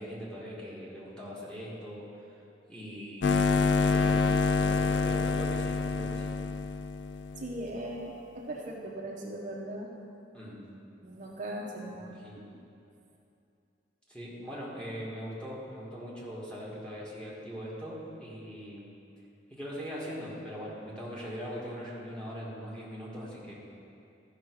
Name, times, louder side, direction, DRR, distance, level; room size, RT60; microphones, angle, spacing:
voice 1, 0.0-2.1 2.7-6.3 10.3-10.6 11.9-12.5 14.1-18.9 19.5-23.5, equal, 5° left, -6 dB, 2.0 m, -41 dB
Ground Floor Mains, 3.2-7.6, left 4 dB, 75° left, 0.4 m, -27 dB
voice 2, 7.4-9.9 11.0-12.2, right 1 dB, 45° right, -2 dB, 0.8 m, -39 dB
13.5 x 5.9 x 4.7 m, 2.7 s
head